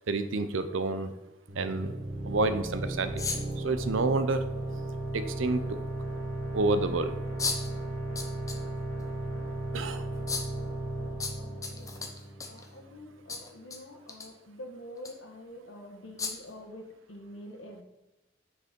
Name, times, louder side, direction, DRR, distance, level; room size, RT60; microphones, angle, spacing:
voice 1, 0.1-1.1 1.5-1.9 2.2-3.3 3.6-4.4 5.1-5.8 6.5-7.2 9.7-10.1, right 3 dB, 90° right, 10 dB, 0.6 m, -29 dB
sound 1, 1.5-12.9, right 1 dB, 60° right, 1.3 m, -35 dB
Squeezy Sniffy Bottle, 3.2-3.6 5.1-5.2 7.4-7.7 8.1-8.6 9.0-9.1 10.3-10.5 11.2-12.7 13.3-13.8 14.1-14.3 15.0-15.1 16.2-16.5, left 4 dB, 15° left, 0.7 m, -34 dB
voice 2, 11.4-12.0 12.5-17.8, left 1 dB, 90° left, 3 dB, 1.3 m, -46 dB
6.4 x 4.9 x 5.2 m, 0.96 s
head